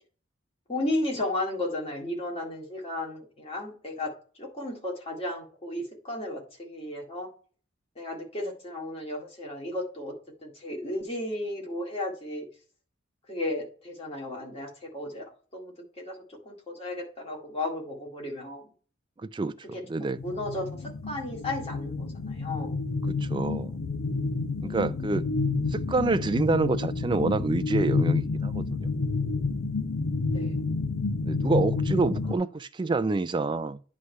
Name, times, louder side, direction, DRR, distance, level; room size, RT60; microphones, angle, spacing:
voice 1, 0.7-4.1 4.4-7.3 8.0-10.1 10.4-12.5 13.3-15.2 15.5-18.7 19.7-22.8 24.6-24.9 30.3-30.6, left 1 dB, 30° left, 2.1 m, -34 dB
voice 2, 19.2-20.2 23.1-23.8 24.6-25.3 25.7-28.9 31.2-33.8, right 3 dB, 25° right, 0.3 m, -27 dB
sound 1, 20.2-32.4, left 4 dB, 85° left, 0.6 m, -29 dB
9.5 x 3.2 x 5.5 m
head